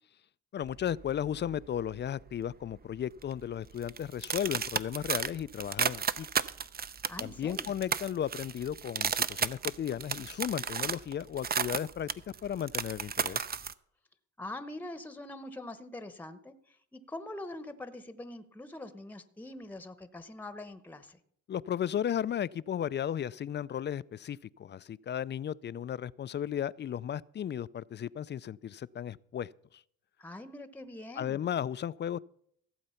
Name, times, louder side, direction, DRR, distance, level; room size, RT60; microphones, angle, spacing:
voice 1, 0.5-6.3 7.2-12.1 12.4-13.5 21.5-29.5 31.2-32.2, left 9 dB, 35° left, 0.4 m, -35 dB
sound 1, 0.6-2.1 2.3-2.7 3.2-13.7, right 6 dB, 30° right, 0.6 m, -34 dB
voice 2, 7.1-7.7 14.4-21.2 30.2-31.4, left 1 dB, 5° left, 0.9 m, -44 dB
15.5 x 7.9 x 5.7 m
cardioid pair, 90°, 30 cm